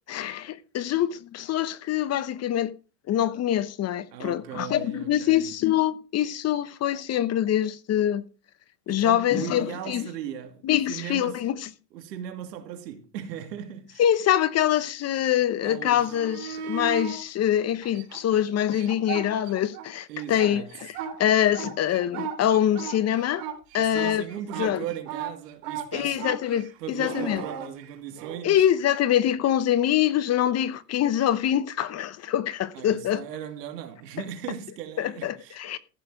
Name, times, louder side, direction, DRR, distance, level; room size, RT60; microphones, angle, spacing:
voice 1, 0.1-2.7 3.1-8.2 8.9-10.1 10.6-11.7 14.0-20.9 21.2-23.4 23.7-24.2 24.6-24.8 25.9-27.4 28.4-33.2 35.0-35.8, left 11 dB, 30° left, 0.9 m, -24 dB
voice 2, 4.1-5.5 8.9-11.4 11.9-14.0 15.6-16.2 20.1-20.7 23.8-26.2 26.8-28.7 32.7-35.8, right 9 dB, 85° right, 2.7 m, -38 dB
sound 1, 16.0-17.2 17.8-19.9 20.2-28.4 31.2-31.3, right 8 dB, 60° right, 3.7 m, -36 dB
14.5 x 6.7 x 4.9 m
supercardioid pair, 110°, 48 cm